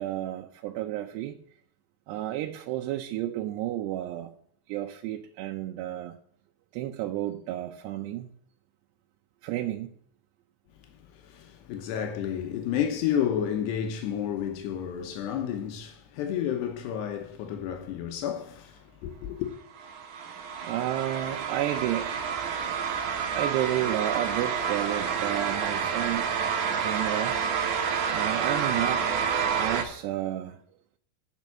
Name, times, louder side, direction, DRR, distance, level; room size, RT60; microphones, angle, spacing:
voice 1, 0.0-1.4 2.1-4.3 4.7-6.2 6.7-8.3 9.4-9.9 20.6-22.1 23.4-26.3 26.8-27.4 28.1-29.1 29.5-30.6, right 13 dB, 85° right, 2.8 m, -31 dB
voice 2, 10.8-19.5, left 9 dB, 85° left, 3.1 m, -31 dB
sound 1, 19.8-29.8, right 7 dB, 65° right, 2.4 m, -29 dB
9.1 x 6.2 x 8.3 m
omnidirectional pair, 4.8 m